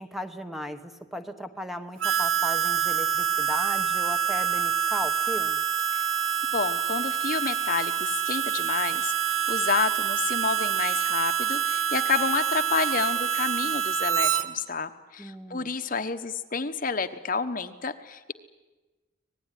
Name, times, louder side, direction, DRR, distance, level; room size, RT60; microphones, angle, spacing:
voice 1, 0.0-5.6 15.2-15.7, left 1 dB, ahead, 7 dB, 1.1 m, -37 dB
Harmonica, 2.0-14.4, right 9 dB, 85° right, 1.6 m, -26 dB
voice 2, 6.5-18.3, left 5 dB, 45° left, 9 dB, 1.1 m, -30 dB
25.0 x 19.0 x 10.0 m, 1.2 s
head